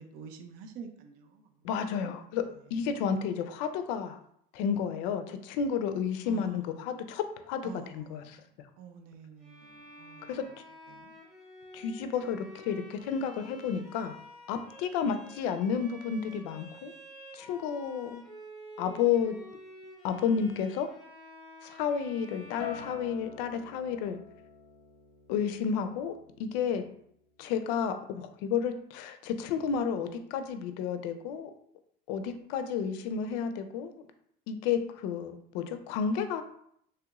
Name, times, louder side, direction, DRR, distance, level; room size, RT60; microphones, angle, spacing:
voice 1, 0.0-1.6 2.0-2.1 6.2-6.8 7.6-8.3 8.8-10.6 10.9-11.1, right 6 dB, 50° right, 5 dB, 0.4 m, -48 dB
voice 2, 1.6-2.5 2.7-4.2 4.5-8.2 10.3-10.4 11.7-14.2 14.5-16.9 17.3-18.2 18.8-19.3 20.0-20.9 21.6-24.2 25.3-26.8 27.4-31.5 32.1-33.9 34.5-36.4, left 7 dB, 85° left, 9 dB, 0.4 m, -31 dB
Bowed string instrument, 9.4-23.7, equal, ahead, 0.6 m, -50 dB
Acoustic guitar, 22.6-27.0 27.4-27.8, left 7 dB, 55° left, 0.7 m, -47 dB
3.2 x 2.4 x 2.9 m, 0.69 s
cardioid pair, 180°, 20 cm